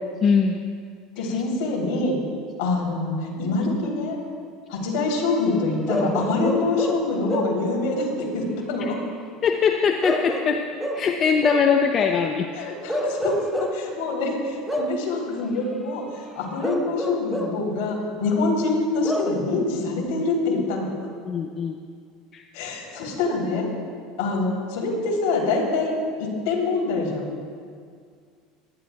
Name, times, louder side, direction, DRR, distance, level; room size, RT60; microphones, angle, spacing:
voice 1, 0.2-0.6 8.8-8.9 9.4-10.6 10.9-12.5 21.3-21.8 22.3-22.4, left 6 dB, 40° left, 4 dB, 0.6 m, -21 dB
voice 2, 1.2-2.2 2.6-4.2 4.7-9.0 12.5-13.4 13.7-20.9 22.5-23.7 24.2-25.9 26.2-27.3, left 3 dB, 75° left, -2 dB, 3.2 m, -25 dB
Bark / Livestock farm animals working animals, 5.9-7.7 10.0-11.8 12.9-13.9 14.7-15.1 16.6-17.7 19.0-19.4, equal, ahead, 0.9 m, -28 dB
22.0 x 11.0 x 2.3 m, 2.1 s
supercardioid pair, 100°, 0 cm